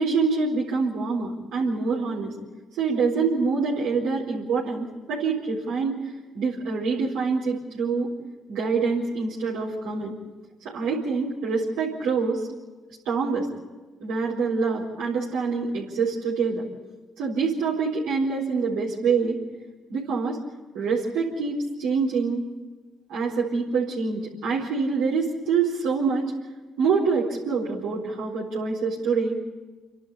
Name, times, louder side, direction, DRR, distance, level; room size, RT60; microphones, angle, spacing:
voice 1, 0.0-2.3 2.8-6.0 6.3-8.1 8.5-10.1 10.6-12.5 13.0-13.5 14.0-16.6 17.2-19.4 19.9-20.4 20.7-22.4 23.1-26.3 26.8-29.4, right 4 dB, 80° right, -7 dB, 4.3 m, -25 dB
29.0 x 12.0 x 8.5 m, 1.3 s
hypercardioid pair, 50°, 0 cm